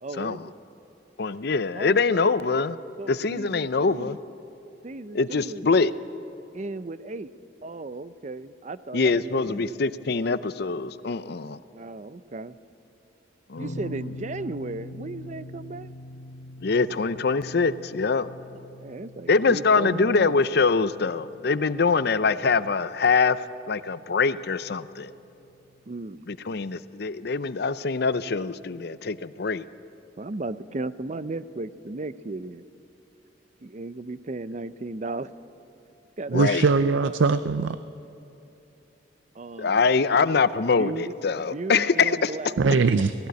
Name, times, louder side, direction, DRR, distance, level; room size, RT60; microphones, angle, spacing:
voice 1, 0.0-0.6 1.8-2.3 3.0-4.2 4.8-5.6 6.5-7.3 7.6-9.8 11.7-12.6 13.6-15.9 18.5-20.4 25.9-26.3 30.2-32.6 33.6-35.3 36.2-37.2 39.3-39.9 40.8-42.6, right 2 dB, 40° right, 15 dB, 0.5 m, -35 dB
voice 2, 1.2-2.8 3.1-4.2 5.1-5.9 8.9-11.6 13.5-13.7 16.6-18.3 19.3-25.1 26.3-29.6 36.3-36.7 39.6-42.3, left 4 dB, 60° left, 15 dB, 0.6 m, -24 dB
sound 1, 13.6-26.5, left 1 dB, 75° left, 1.8 m, -44 dB
voice 3, 36.3-37.8 42.6-43.1, right 4 dB, 85° right, 12 dB, 0.5 m, -21 dB
17.0 x 16.5 x 9.4 m, 2.9 s
head